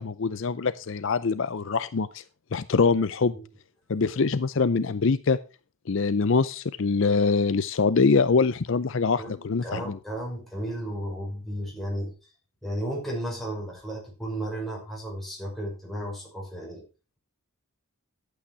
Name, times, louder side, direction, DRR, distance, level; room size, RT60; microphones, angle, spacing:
voice 1, 0.0-2.2 2.5-3.3 3.9-5.4 5.9-10.0, left 4 dB, 60° left, 15 dB, 0.5 m, -24 dB
voice 2, 9.2-12.1 12.6-16.8, right 1 dB, ahead, -3 dB, 5.6 m, -34 dB
11.5 x 8.6 x 4.7 m, 0.32 s
head